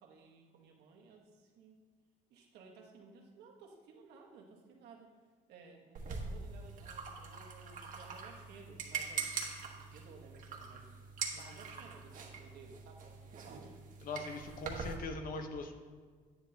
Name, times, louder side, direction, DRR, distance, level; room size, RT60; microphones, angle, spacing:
voice 1, 0.0-1.8 2.3-5.1 5.5-10.9 11.4-13.8, right 4 dB, 75° right, 0 dB, 1.5 m, -57 dB
sound 1, 5.9-15.0, right 5 dB, 50° right, 1.4 m, -43 dB
voice 2, 14.0-15.7, left 3 dB, 55° left, 6 dB, 1.0 m, -41 dB
9.8 x 9.4 x 2.9 m, 1.5 s
cardioid pair, 110°, 17 cm